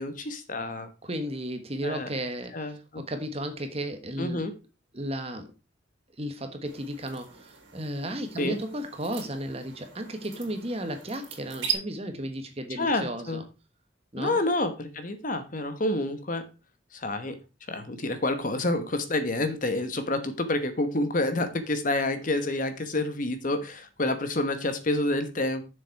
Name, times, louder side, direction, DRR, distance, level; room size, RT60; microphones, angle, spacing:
voice 1, 0.0-0.9 1.8-2.1 2.5-3.0 4.2-4.5 8.4-8.6 12.7-13.4 14.2-16.4 16.9-17.4 17.7-25.6, left 2 dB, 45° left, 10 dB, 1.1 m, -28 dB
voice 2, 1.0-4.4 4.9-5.5 6.2-13.4 14.1-14.4, right 1 dB, 30° right, 7 dB, 1.3 m, -34 dB
sound 1, 6.6-11.7, right 8 dB, 75° right, 3.3 m, -39 dB
7.1 x 7.0 x 4.5 m, 0.29 s
head